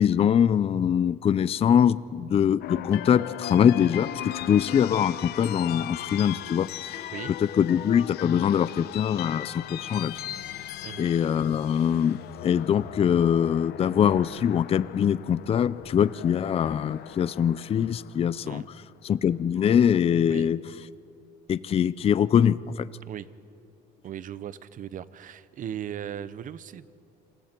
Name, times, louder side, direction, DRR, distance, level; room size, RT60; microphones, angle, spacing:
voice 1, 0.0-7.0 7.6-10.2 11.0-18.6 19.0-20.6 21.5-22.9, left 8 dB, 35° left, 17 dB, 0.5 m, -23 dB
sound 1, 2.6-18.8, left 12 dB, 75° left, 0.8 m, -38 dB
voice 2, 24.0-26.9, right 10 dB, 50° right, 16 dB, 0.8 m, -37 dB
29.0 x 20.5 x 4.5 m, 2.8 s
cardioid pair, 110°, 17 cm